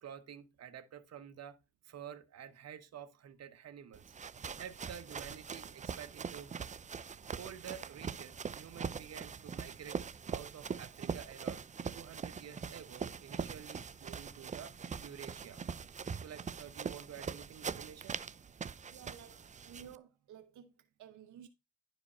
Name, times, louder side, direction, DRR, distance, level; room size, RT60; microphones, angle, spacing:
voice 1, 0.0-1.6 1.8-4.1 4.6-6.5 7.3-10.0 10.3-11.6 11.9-14.7 15.0-15.6 16.1-18.2, right 9 dB, 55° right, 1.2 m, -50 dB
sound 1, 3.9-20.0, right 6 dB, 25° right, 0.5 m, -42 dB
voice 2, 4.2-4.6 18.9-21.5, right 8 dB, 85° right, 0.9 m, -55 dB
11.0 x 5.1 x 4.3 m
cardioid pair, 90°, 30 cm